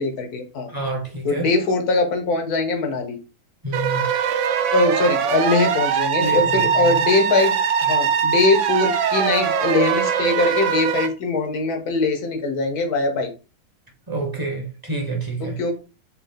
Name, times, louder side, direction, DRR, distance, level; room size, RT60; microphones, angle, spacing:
voice 1, 0.0-0.7 1.2-3.2 4.7-7.5 7.8-13.3 15.4-15.7, left 3 dB, 90° left, 1.4 m, -22 dB
voice 2, 0.7-1.5 3.6-4.0 6.2-7.0 14.1-15.6, right 2 dB, 15° right, 1.0 m, -28 dB
sound 1, 3.7-11.1, right 7 dB, 65° right, 0.8 m, -21 dB
4.4 x 2.4 x 3.6 m
omnidirectional pair, 1.6 m